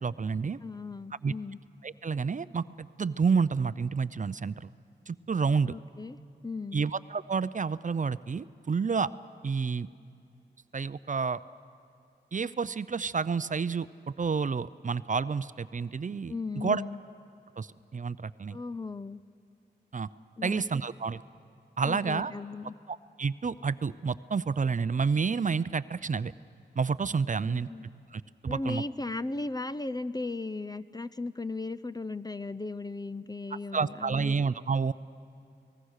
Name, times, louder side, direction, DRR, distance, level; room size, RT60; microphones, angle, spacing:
voice 1, 0.0-0.6 1.2-1.3 1.8-4.7 5.1-5.7 6.7-9.1 9.4-9.9 10.7-11.4 12.3-16.8 17.6-18.6 19.9-20.1 20.4-21.2 21.8-22.3 22.9-26.3 26.8-27.7 28.1-28.8 33.7-34.9, right 5 dB, 40° right, 16 dB, 0.5 m, -29 dB
voice 2, 0.6-1.6 5.6-6.8 16.3-17.0 18.5-19.2 20.4-20.6 21.8-22.8 27.5-27.9 28.5-34.4, left 3 dB, 20° left, 14 dB, 0.5 m, -36 dB
29.0 x 19.5 x 6.5 m, 2.4 s
cardioid pair, 60°, 19 cm